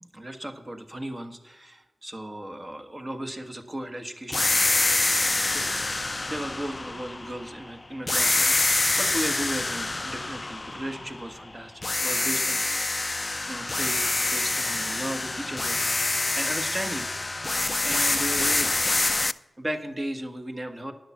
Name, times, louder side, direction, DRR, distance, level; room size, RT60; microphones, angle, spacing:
voice 1, 0.1-4.7 5.3-16.0 16.3-17.1 17.8-18.8 19.6-20.9, right 1 dB, 30° right, 6 dB, 1.4 m, -36 dB
sound 1, 4.3-7.6 8.1-11.4 11.8-19.3, left 2 dB, 35° left, 0.4 m, -26 dB
10.5 x 6.5 x 7.3 m, 1.0 s
cardioid pair, 45°, 0 cm